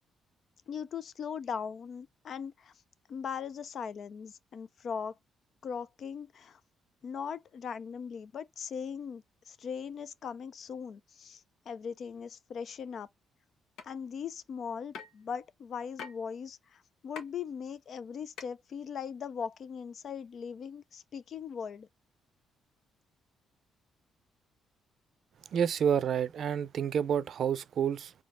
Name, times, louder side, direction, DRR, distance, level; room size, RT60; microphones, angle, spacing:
voice 1, 0.7-2.7 3.1-5.2 5.6-6.6 7.0-13.1 13.8-21.9, left 7 dB, 55° left, 0.4 m, -39 dB
sound 1, 13.8-13.9 14.9-15.2 16.0-16.2 17.2-17.3 18.4-18.5, left 6 dB, 80° left, 1.0 m, -41 dB
voice 2, 25.5-28.1, right 8 dB, 60° right, 0.4 m, -29 dB
4.5 x 2.7 x 3.5 m
cardioid pair, 90°, 0 cm